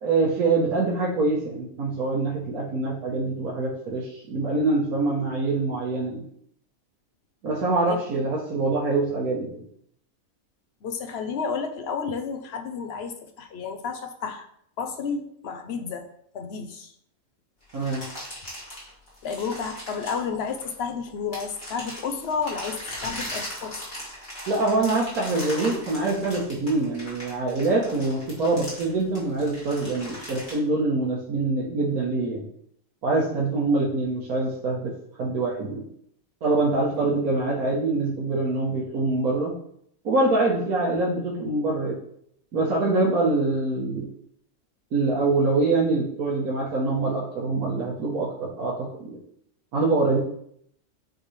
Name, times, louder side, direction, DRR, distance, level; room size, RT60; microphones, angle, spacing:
voice 1, 0.0-6.3 7.4-9.6 17.7-18.0 24.5-32.4 33.0-34.9 35.2-35.8 36.4-39.5 40.0-41.9 42.5-44.1 44.9-49.2 49.7-50.2, right 3 dB, 85° right, -4 dB, 1.6 m, -24 dB
voice 2, 10.8-14.5 14.8-16.1 16.3-16.9 19.2-23.8, left 5 dB, 55° left, 6 dB, 0.9 m, -31 dB
sound 1, 17.7-20.9 21.3-30.5, left 1 dB, 35° left, 2.7 m, -38 dB
9.0 x 3.8 x 3.2 m, 0.70 s
omnidirectional pair, 1.5 m